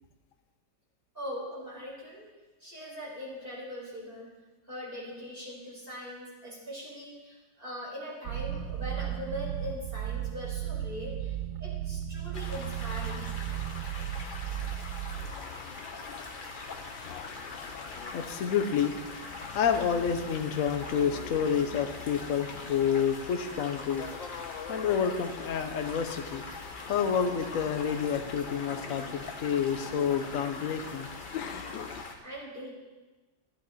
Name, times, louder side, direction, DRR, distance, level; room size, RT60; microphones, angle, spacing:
voice 1, 1.1-2.3 2.6-4.3 4.7-13.3 32.2-32.7, left 1 dB, 30° right, -6 dB, 5.0 m, -41 dB
sound 1, 8.2-15.3, right 11 dB, 85° right, 1.4 m, -35 dB
sound 2, 12.3-32.2, left 3 dB, 30° left, 1.1 m, -43 dB
sound 3, 15.1-32.0, left 9 dB, 80° left, 1.4 m, -45 dB
voice 2, 18.1-19.0 19.5-24.1 24.7-26.4 26.9-31.1, left 7 dB, 55° left, 6 dB, 1.1 m, -29 dB
14.0 x 11.0 x 4.3 m, 1.2 s
omnidirectional pair, 2.0 m